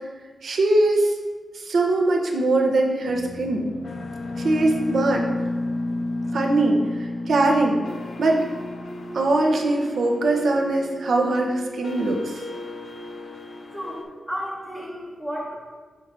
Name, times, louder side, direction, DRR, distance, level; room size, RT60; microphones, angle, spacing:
voice 1, 0.4-1.1 1.5-3.7 4.4-5.3 6.3-7.8 8.2-8.4 9.1-12.4, right 2 dB, 65° right, 1 dB, 0.9 m, -21 dB
sound 1, 3.1-14.0, left 1 dB, 55° left, 0.8 m, -32 dB
voice 2, 13.7-15.5, equal, 5° right, -7 dB, 1.1 m, -33 dB
7.9 x 2.8 x 6.1 m, 1.4 s
wide cardioid pair, 160°, 0 cm